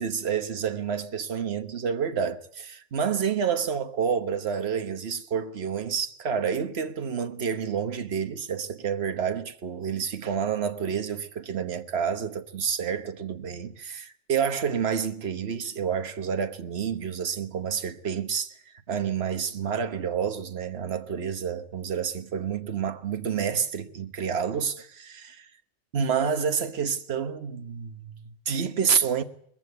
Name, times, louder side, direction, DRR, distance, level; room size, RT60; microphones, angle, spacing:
voice 1, 0.0-18.5 18.9-25.5 25.9-29.2, right 7 dB, 55° right, 1.4 m, -29 dB
21.0 x 15.0 x 9.5 m
omnidirectional pair, 1.3 m